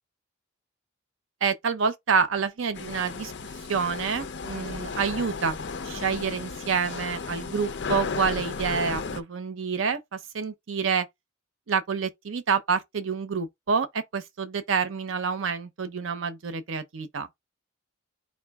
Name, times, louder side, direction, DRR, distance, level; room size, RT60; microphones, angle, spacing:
voice 1, 1.4-3.3 3.7-5.6 5.8-11.1 11.7-17.3, right 5 dB, 80° right, 0.6 m, -28 dB
sound 1, 2.7-9.2, left 4 dB, 60° left, 0.6 m, -34 dB
4.2 x 2.6 x 3.4 m
head